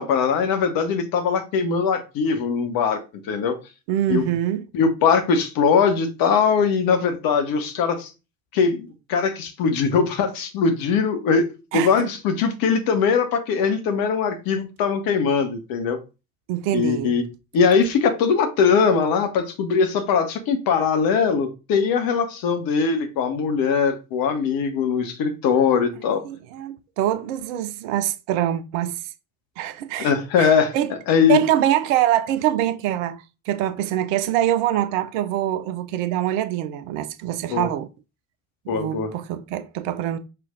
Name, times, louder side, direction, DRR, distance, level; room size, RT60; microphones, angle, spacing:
voice 1, 0.0-3.6 4.1-4.3 4.7-8.1 8.5-11.5 11.7-16.0 16.7-17.2 17.5-26.2 30.0-30.7 31.1-31.4 37.5-37.7 38.7-39.1, left 6 dB, 50° left, 0.9 m, -21 dB
voice 2, 3.9-4.7 11.7-12.1 16.5-17.1 26.2-29.0 29.6-30.1 30.4-30.9 31.3-33.2 33.5-37.9 38.7-40.2, right 12 dB, 60° right, 0.6 m, -24 dB
5.6 x 2.5 x 2.5 m
figure-of-eight pair, 50°, 44 cm